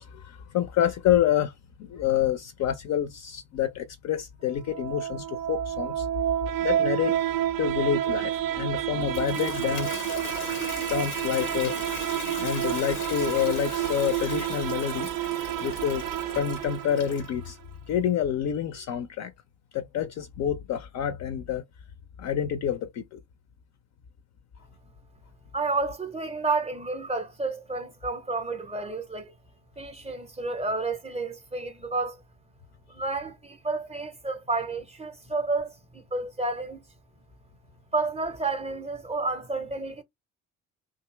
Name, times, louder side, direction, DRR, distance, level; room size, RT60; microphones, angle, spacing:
voice 1, 0.0-1.5 1.8-6.1 6.6-7.2 7.6-10.1 10.9-11.8 12.4-15.1 15.6-16.0 16.3-17.6 17.9-19.3 19.7-21.6 22.2-23.2, left 9 dB, 40° left, 0.4 m, -28 dB
sound 1, 4.5-17.5, right 12 dB, 70° right, 0.5 m, -30 dB
Toilet flush, 8.9-17.5, left 3 dB, 90° left, 0.6 m, -39 dB
voice 2, 25.5-29.3 29.8-32.2 32.9-36.8 37.9-40.0, right 3 dB, 15° right, 0.6 m, -30 dB
2.6 x 2.4 x 3.1 m
figure-of-eight pair, 45°, 43 cm